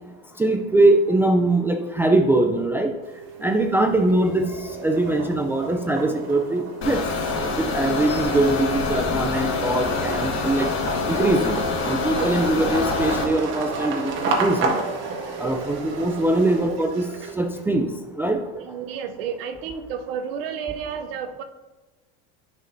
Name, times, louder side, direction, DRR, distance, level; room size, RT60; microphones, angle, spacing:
voice 1, 0.4-2.9 3.4-4.5 4.8-7.0 7.7-10.7 11.1-14.7 15.4-17.1 17.4-17.9 18.2-18.4, right 2 dB, 10° right, 3 dB, 0.3 m, -22 dB
sound 1, 2.9-17.3, right 9 dB, 15° left, 1.4 m, -41 dB
sound 2, 3.0-3.7 4.1-17.6, right 3 dB, 45° right, 1.5 m, -32 dB
sound 3, 6.8-13.2, left 4 dB, 45° left, 1.3 m, -26 dB
voice 2, 12.2-12.8 14.7-14.8 15.4-15.8 16.6-16.9 18.5-21.4, right 7 dB, 85° right, 7 dB, 0.7 m, -32 dB
9.6 x 5.3 x 2.6 m, 1.2 s
supercardioid pair, 130°, 29 cm